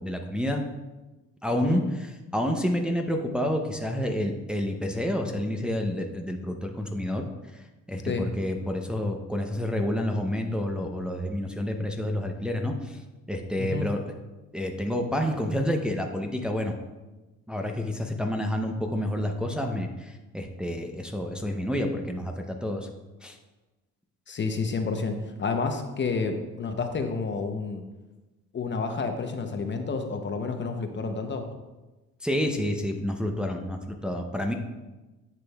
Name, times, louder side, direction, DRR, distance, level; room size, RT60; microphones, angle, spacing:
voice 1, 0.0-0.6 1.4-7.3 7.9-13.0 13.3-14.0 14.5-16.7 17.5-22.9 23.2-23.4 32.2-34.5, left 1 dB, 5° right, 2 dB, 0.6 m, -29 dB
voice 2, 1.5-1.8 8.1-8.3 13.6-13.9 24.3-27.8 28.5-31.5, left 4 dB, 40° left, 5 dB, 0.8 m, -30 dB
9.7 x 6.1 x 2.3 m, 1.1 s
cardioid pair, 90°, 30 cm